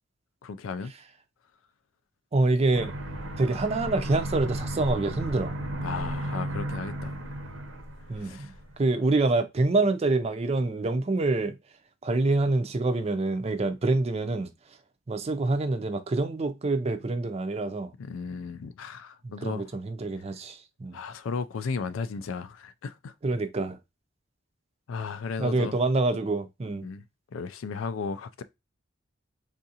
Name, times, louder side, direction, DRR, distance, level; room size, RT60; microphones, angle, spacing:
voice 1, 0.4-0.9 5.8-7.1 8.2-8.5 18.0-19.7 20.9-23.1 24.9-25.8 26.8-27.0 27.3-28.4, left 5 dB, 90° left, 0.4 m, -35 dB
voice 2, 2.3-2.9 3.4-5.5 8.1-8.5 8.8-11.5 12.0-14.5 15.1-17.9 19.2-21.0 23.2-23.8 25.4-26.9, right 2 dB, 30° right, 0.4 m, -26 dB
Aircraft, 2.7-8.8, right 1 dB, 80° right, 0.8 m, -34 dB
3.6 x 2.5 x 2.7 m
head